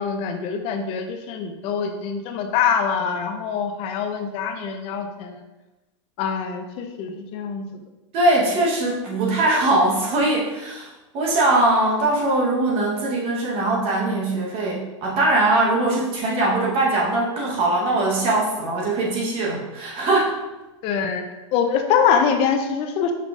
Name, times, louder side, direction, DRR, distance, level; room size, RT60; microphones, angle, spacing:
voice 1, 0.0-5.4 6.2-7.6 20.8-21.2 21.5-23.1, left 7 dB, 35° left, 6 dB, 0.5 m, -24 dB
voice 2, 8.1-20.3, right 2 dB, 35° right, -3 dB, 1.0 m, -21 dB
5.5 x 3.8 x 2.4 m, 1.1 s
supercardioid pair, 145°, 16 cm